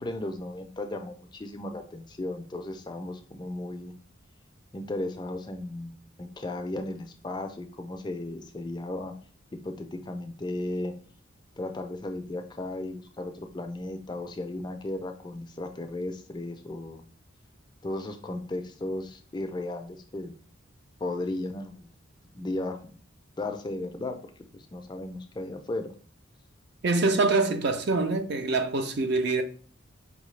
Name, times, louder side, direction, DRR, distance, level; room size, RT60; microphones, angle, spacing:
voice 1, 0.0-4.0 4.7-9.1 9.6-10.9 11.6-17.0 17.8-20.3 21.0-21.9 22.3-22.8 23.4-24.2 24.5-25.9, left 2 dB, 20° left, 0.3 m, -35 dB
voice 2, 26.8-29.4, right 3 dB, 55° right, 0.4 m, -25 dB
4.8 x 2.6 x 3.1 m
head